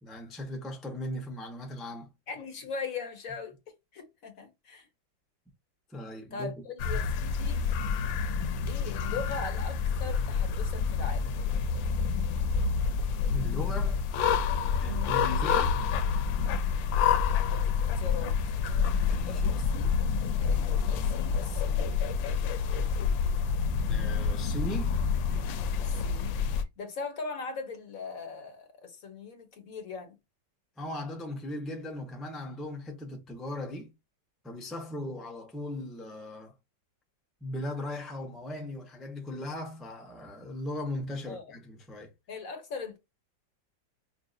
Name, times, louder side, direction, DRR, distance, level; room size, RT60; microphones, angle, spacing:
voice 1, 0.0-2.1 5.9-6.5 13.3-14.0 14.8-15.8 19.0-19.4 23.9-25.0 30.8-33.9 34.4-36.5 37.4-42.1, left 1 dB, ahead, 0.3 m, -38 dB
voice 2, 2.3-3.6 3.9-4.9 6.3-7.6 8.6-11.3 14.8-15.2 17.5-18.4 19.3-19.9 20.4-22.0 25.8-30.2 41.3-41.4 42.3-43.0, left 5 dB, 50° left, 1.3 m, -40 dB
sound 1, 6.8-26.6, left 6 dB, 85° left, 1.3 m, -28 dB
5.5 x 2.7 x 2.4 m
omnidirectional pair, 2.0 m